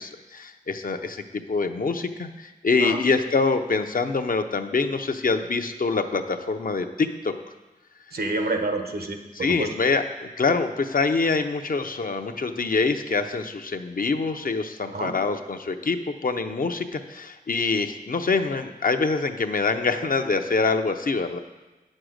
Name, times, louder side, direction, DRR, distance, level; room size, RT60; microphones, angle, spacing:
voice 1, 0.0-7.3 9.3-21.4, left 4 dB, 65° left, 7 dB, 0.7 m, -25 dB
voice 2, 8.1-9.2 9.5-9.8 14.9-15.1, right 2 dB, 90° right, 4 dB, 1.1 m, -28 dB
8.9 x 6.5 x 6.4 m, 1.2 s
wide cardioid pair, 65°, 16 cm